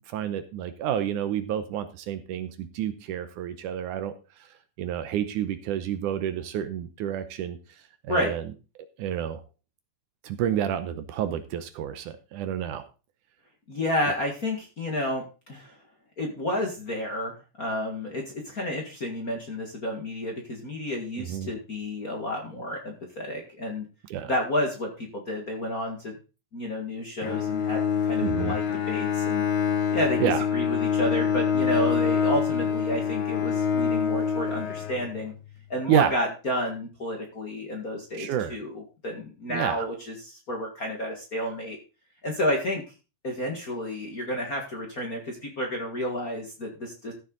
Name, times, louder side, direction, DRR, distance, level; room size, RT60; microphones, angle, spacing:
voice 1, 0.1-4.1 4.8-7.6 8.0-8.4 9.0-9.4 10.2-12.8 21.2-21.5 24.1-24.3 28.2-28.5 30.2-30.4 35.9-36.2 38.2-38.6 39.5-39.9, right 10 dB, 75° right, 11 dB, 2.2 m, -29 dB
voice 2, 13.7-15.8 16.2-17.3 17.6-23.9 24.3-26.1 26.5-29.4 29.9-30.2 30.5-35.3 35.7-41.8 42.2-42.8 43.2-47.1, left 1 dB, 35° left, 1 dB, 1.6 m, -31 dB
Bowed string instrument, 27.2-35.4, left 7 dB, 70° left, 1.2 m, -26 dB
14.0 x 6.9 x 4.0 m, 0.31 s
omnidirectional pair, 3.9 m